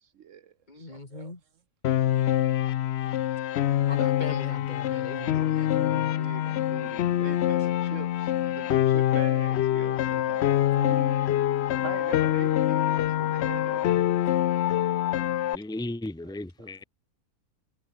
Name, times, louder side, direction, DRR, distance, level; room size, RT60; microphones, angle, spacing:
voice 1, 0.0-1.3 5.7-14.9 16.2-16.7, right 9 dB, 60° right, 1.1 m, -44 dB
voice 2, 0.7-1.4 3.9-6.1, left 2 dB, 30° left, 2.7 m, -39 dB
Piano, 1.8-15.6, left 12 dB, 65° left, 0.7 m, -25 dB
voice 3, 15.5-16.8, left 1 dB, 5° left, 1.1 m, -35 dB
omnidirectional pair, 1.5 m